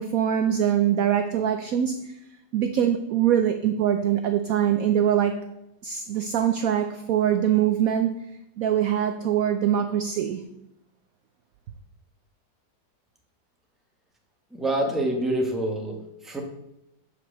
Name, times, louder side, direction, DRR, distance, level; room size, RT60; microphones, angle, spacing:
voice 1, 0.0-2.2 2.5-5.3 5.8-8.1 8.6-10.4, right 9 dB, 70° right, 8 dB, 0.9 m, -23 dB
voice 2, 14.5-16.4, right 1 dB, ahead, 1 dB, 1.0 m, -26 dB
8.3 x 4.5 x 6.5 m, 0.82 s
omnidirectional pair, 1.9 m